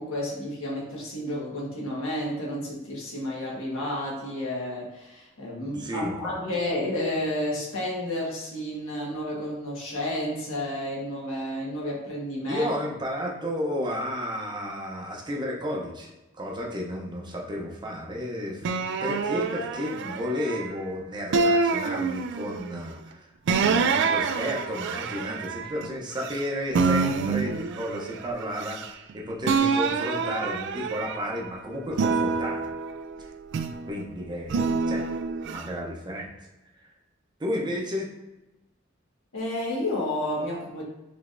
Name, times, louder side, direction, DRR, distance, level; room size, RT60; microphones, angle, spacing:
voice 1, 0.0-12.7 39.3-40.8, left 1 dB, 75° left, -4 dB, 1.4 m, -31 dB
voice 2, 5.6-6.4 12.5-18.7 19.0-32.7 33.8-35.1 35.4-36.5 36.8-36.9 37.4-38.1, equal, 20° right, -1 dB, 0.6 m, -32 dB
sound 1, 18.6-20.8 21.3-22.7 23.5-26.4 26.7-29.1 29.4-31.4 31.9-33.9 34.5-35.6, right 4 dB, 60° right, 0.3 m, -27 dB
5.0 x 3.2 x 2.5 m, 1.0 s
head